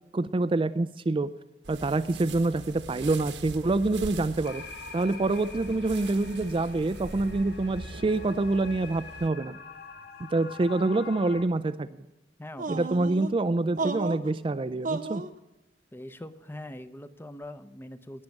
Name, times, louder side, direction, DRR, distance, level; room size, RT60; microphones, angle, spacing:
voice 1, 0.1-1.3 1.7-4.6 4.9-9.6 10.3-11.9 12.7-15.2, right 2 dB, 30° right, 13 dB, 0.4 m, -26 dB
sound 1, 1.6-9.3, right 2 dB, 90° right, 1.4 m, -43 dB
sound 2, 4.4-11.4, left 4 dB, 65° left, 1.7 m, -45 dB
voice 2, 12.4-13.1 13.8-14.0 15.9-18.2, left 1 dB, 15° left, 12 dB, 0.7 m, -43 dB
sound 3, 12.6-13.3 13.8-14.3 14.8-15.3, right 3 dB, 50° right, 0.9 m, -32 dB
18.5 x 6.6 x 7.1 m, 1.0 s
head